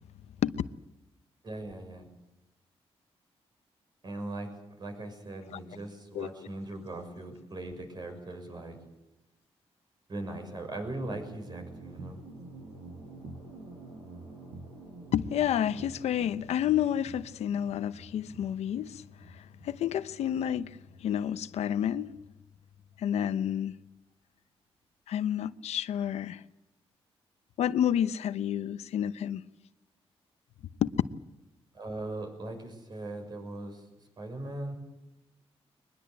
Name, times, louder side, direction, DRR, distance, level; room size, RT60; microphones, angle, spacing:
voice 1, 1.4-2.0 4.0-8.8 10.1-12.2 31.7-33.8 34.2-34.8, right 2 dB, 40° right, 6.3 m, -39 dB
sound 1, 10.8-22.3, right 2 dB, 75° right, 6.0 m, -48 dB
voice 2, 15.1-19.0 19.6-20.7 21.0-22.1 23.0-23.7 25.1-26.4 27.6-29.4 30.8-30.9, left 10 dB, 85° left, 0.9 m, -29 dB
23.0 x 21.0 x 7.9 m
cardioid pair, 110°, 11 cm